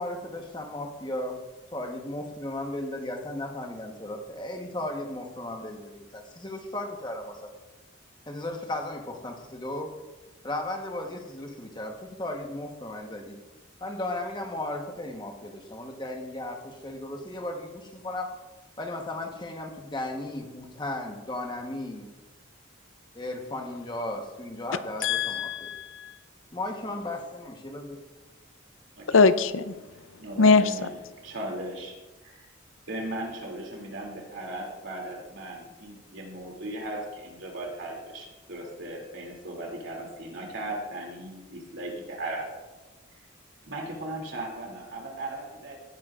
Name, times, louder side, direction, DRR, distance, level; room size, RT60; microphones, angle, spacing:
voice 1, 0.0-1.4 1.7-7.5 8.3-10.0 10.4-13.3 13.8-18.3 18.8-22.1 23.1-25.7 26.5-28.0, left 1 dB, 20° left, 3 dB, 1.1 m, -35 dB
voice 2, 25.0-26.2 29.1-29.7 30.4-30.6, left 4 dB, 75° left, 13 dB, 0.5 m, -21 dB
voice 3, 30.2-31.0 31.2-31.9 32.2-32.4 32.9-42.5 43.7-45.8, right 1 dB, 70° right, 0 dB, 2.7 m, -37 dB
17.5 x 10.5 x 2.5 m, 1.1 s
head